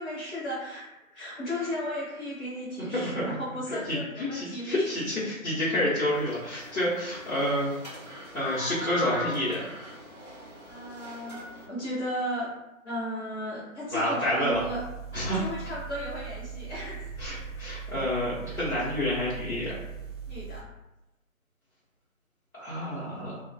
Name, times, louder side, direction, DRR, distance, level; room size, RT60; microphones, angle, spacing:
voice 1, 0.0-4.9 10.7-12.5 12.8-14.8 15.4-17.1 20.3-20.7, equal, 50° left, -10 dB, 1.0 m, -35 dB
voice 2, 2.9-3.2 3.7-7.7 8.3-9.7 13.9-14.6 15.1-15.5 17.2-19.7 22.5-23.4, left 1 dB, 80° left, -11 dB, 1.1 m, -29 dB
sound 1, 6.1-11.6, left 1 dB, 30° left, 0.5 m, -40 dB
sound 2, 14.5-20.6, right 6 dB, 65° right, 0.5 m, -40 dB
2.4 x 2.4 x 2.2 m, 0.96 s
figure-of-eight pair, 160°, 42 cm